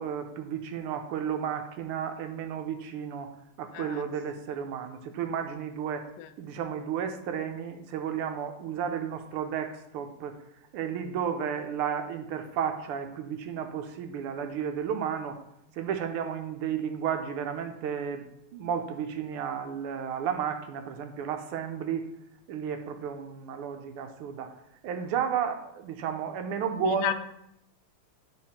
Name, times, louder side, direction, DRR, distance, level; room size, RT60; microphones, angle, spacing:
voice 1, 0.0-3.3 3.6-6.1 6.4-10.4 10.7-15.4 15.7-18.3 18.5-22.1 22.5-24.5 24.8-27.1, right 8 dB, 85° right, 6 dB, 1.6 m, -33 dB
voice 2, 3.7-4.0 6.2-6.3 26.7-27.1, left 10 dB, 75° left, 10 dB, 1.3 m, -32 dB
9.7 x 4.0 x 4.2 m, 0.79 s
omnidirectional pair, 2.4 m